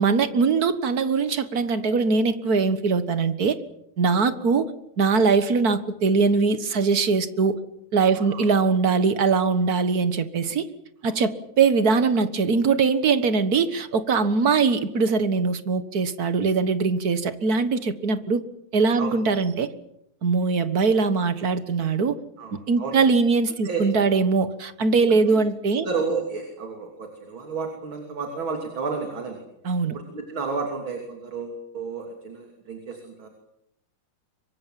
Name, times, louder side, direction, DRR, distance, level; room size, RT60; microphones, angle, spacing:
voice 1, 0.0-3.6 4.0-4.7 5.0-7.5 7.9-10.7 11.0-18.4 18.7-19.7 20.2-22.2 22.7-25.9 29.6-30.0, right 4 dB, 45° right, 12 dB, 1.8 m, -21 dB
voice 2, 8.1-8.5 11.1-11.2 19.0-19.1 22.4-23.0 23.6-23.8 25.1-25.4 25.8-29.4 29.9-33.3, right 4 dB, 65° right, 3 dB, 3.9 m, -32 dB
25.5 x 23.5 x 7.6 m, 0.80 s
omnidirectional pair, 2.4 m